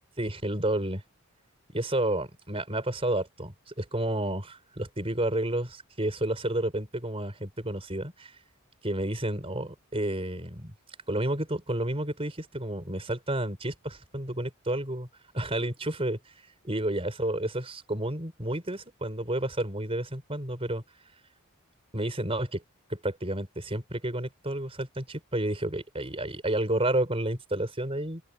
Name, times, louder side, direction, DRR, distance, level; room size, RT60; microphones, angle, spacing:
voice 1, 0.2-1.0 1.7-8.3 8.8-10.7 11.1-15.1 15.3-16.2 16.6-20.8 21.9-22.6 22.9-28.2, right 1 dB, 25° right, 4.4 m, -30 dB
open air
head